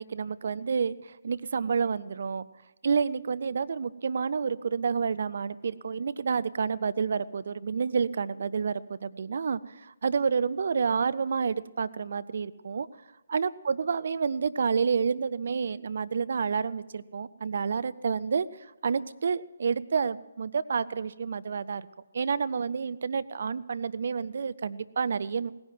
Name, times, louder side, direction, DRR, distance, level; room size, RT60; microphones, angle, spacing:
voice 1, 0.0-2.5 2.8-12.9 13.3-18.5 18.8-21.9 22.1-25.5, right 6 dB, 50° right, 16 dB, 0.5 m, -29 dB
17.5 x 10.5 x 6.0 m, 1.1 s
figure-of-eight pair, 140°, 0 cm